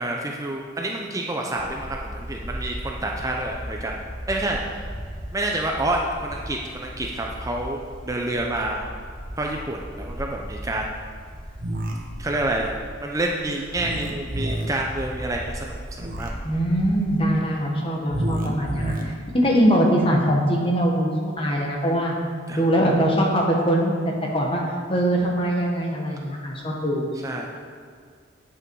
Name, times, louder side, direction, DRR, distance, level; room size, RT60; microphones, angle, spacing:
voice 1, 0.0-4.0 4.3-4.6 5.3-8.9 9.4-11.0 12.2-12.7 13.0-16.3 19.0-19.1 22.5-22.6 27.2-27.5, right 1 dB, 15° right, 0 dB, 0.6 m, -28 dB
sound 1, 1.6-17.2, equal, 5° left, 1.5 m, -37 dB
sound 2, 11.6-11.9 13.7-14.7 15.9-16.3 18.1-19.0, right 1 dB, 45° right, 1.1 m, -29 dB
voice 2, 16.4-18.9 19.3-22.1 22.5-23.9 24.3-24.6 24.9-27.1, equal, 30° left, -1 dB, 1.4 m, -22 dB
8.5 x 8.0 x 4.7 m, 2.1 s
head